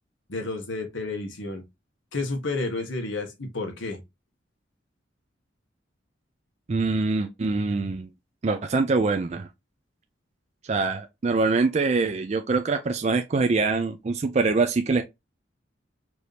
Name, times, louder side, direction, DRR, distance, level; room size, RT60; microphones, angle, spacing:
voice 1, 0.3-1.6 2.1-4.0, left 3 dB, 85° left, 1.3 m, -31 dB
voice 2, 6.7-8.1 8.4-9.5 10.7-15.0, right 3 dB, 35° right, 0.4 m, -24 dB
4.5 x 2.7 x 3.3 m
head